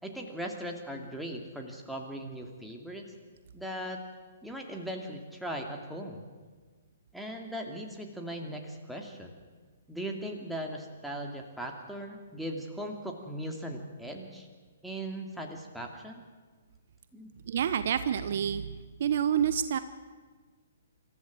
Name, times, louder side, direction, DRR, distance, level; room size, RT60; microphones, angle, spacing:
voice 1, 0.0-3.1 3.5-4.0 4.4-6.3 7.1-9.4 9.9-14.5 14.8-16.2 17.1-17.3, right 1 dB, ahead, 1 dB, 2.5 m, -39 dB
voice 2, 17.5-18.7 19.0-19.8, right 9 dB, 55° right, 12 dB, 0.9 m, -28 dB
26.0 x 14.0 x 7.6 m, 1.4 s
figure-of-eight pair, 125°, 0 cm